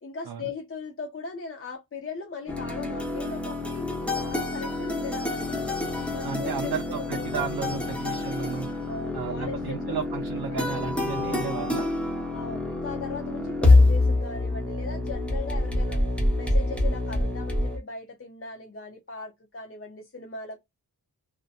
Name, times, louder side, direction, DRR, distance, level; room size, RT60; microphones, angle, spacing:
voice 1, 0.0-5.8 6.1-6.7 7.0-7.9 8.9-10.8 12.3-16.0 16.3-20.6, left 4 dB, 35° left, 0.6 m, -39 dB
sound 1, 2.5-17.8, left 2 dB, 5° left, 0.8 m, -26 dB
voice 2, 6.2-8.7 9.1-11.9, right 6 dB, 75° right, 0.6 m, -33 dB
2.7 x 2.1 x 2.4 m
wide cardioid pair, 90°, 37 cm